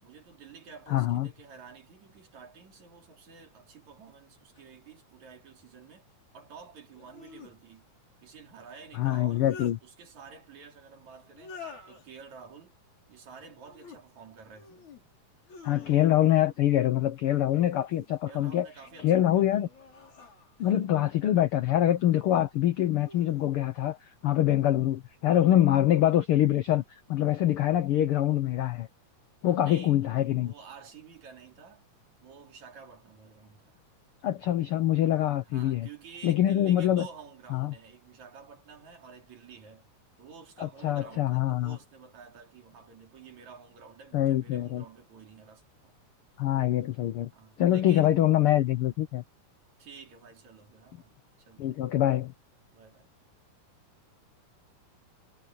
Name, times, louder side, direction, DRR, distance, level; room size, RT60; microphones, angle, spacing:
voice 1, 0.0-6.1 6.3-7.8 8.2-9.4 9.8-12.7 13.1-14.9 18.3-19.7 29.4-30.0 30.4-31.8 32.2-33.9 35.4-39.9 40.2-45.9 47.3-48.2 49.8-51.7 52.7-53.1, right 6 dB, 65° right, 4.4 m, -50 dB
voice 2, 0.9-1.3 8.9-9.8 15.6-18.7 19.0-19.7 20.6-24.0 24.2-26.8 27.1-28.9 29.4-30.5 34.2-35.9 36.2-37.1 37.5-37.7 40.6-41.8 44.1-44.8 46.4-47.3 47.6-49.2 51.6-52.3, left 12 dB, 85° left, 1.2 m, -24 dB
sound 1, 4.6-4.7 6.9-7.6 9.1-9.8 11.3-12.1 13.5-14.0 14.5-15.0 15.4-16.3 17.6-18.2 18.8-20.8 21.9-22.4 23.0-23.5, left 5 dB, 65° left, 7.2 m, -49 dB
omnidirectional pair, 3.6 m